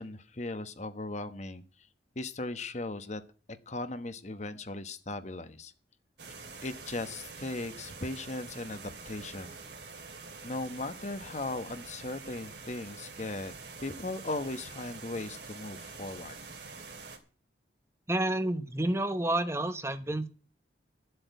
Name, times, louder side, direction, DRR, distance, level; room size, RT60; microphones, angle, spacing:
voice 1, 0.0-1.6 2.1-3.2 3.5-5.7 6.6-9.6 10.4-13.5 13.8-16.4, left 2 dB, 40° left, 11 dB, 1.1 m, -38 dB
sound 1, 6.2-17.2, right 4 dB, 70° right, 2.7 m, -46 dB
voice 2, 18.1-20.3, right 1 dB, 15° right, 10 dB, 0.9 m, -29 dB
12.5 x 7.9 x 8.1 m, 0.37 s
head